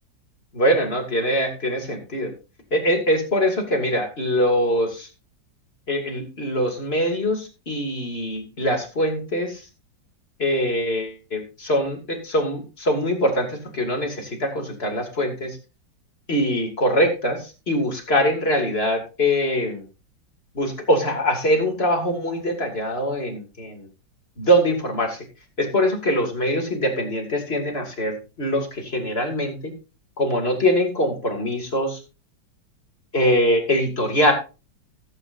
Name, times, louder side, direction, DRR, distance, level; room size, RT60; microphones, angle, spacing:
voice 1, 0.5-2.3 2.7-5.1 5.9-9.6 10.4-15.6 16.3-19.8 20.5-23.9 24.4-25.2 25.6-29.7 30.2-32.0 33.1-34.3, equal, 30° left, 2 dB, 2.9 m, -23 dB
16.5 x 8.8 x 2.7 m, 0.31 s
omnidirectional pair, 2.0 m